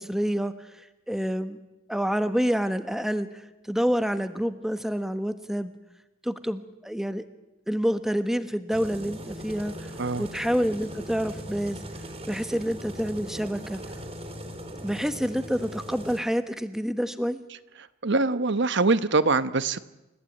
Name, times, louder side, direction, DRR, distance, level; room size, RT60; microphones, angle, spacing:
voice 1, 0.0-1.6 1.9-5.7 6.2-7.3 7.7-9.9 10.2-11.8 12.3-13.8 14.8-17.4, equal, ahead, 10 dB, 1.3 m, -28 dB
sound 1, 8.7-16.2, equal, 30° right, 3.4 m, -39 dB
voice 2, 18.0-19.8, right 3 dB, 60° right, 13 dB, 1.1 m, -23 dB
28.5 x 15.5 x 9.2 m, 0.99 s
head